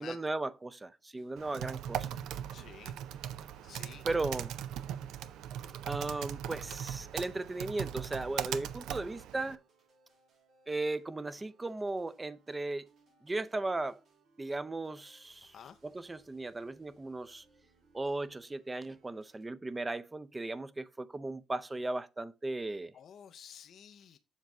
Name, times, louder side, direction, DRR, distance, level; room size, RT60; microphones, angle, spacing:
voice 1, 0.0-2.1 4.0-4.5 5.9-9.6 10.7-12.9 13.2-14.0 14.4-15.5 15.8-17.4 17.9-22.9, right 2 dB, 20° right, 0.5 m, -36 dB
sound 1, 1.1-19.4, right 3 dB, 70° right, 3.8 m, -69 dB
Typing, 1.4-9.6, right 10 dB, 85° right, 0.4 m, -39 dB
voice 2, 2.5-3.0 3.6-4.1 15.4-15.8 22.9-24.2, left 8 dB, 65° left, 0.5 m, -51 dB
7.3 x 3.9 x 4.7 m
cardioid pair, 90°, 0 cm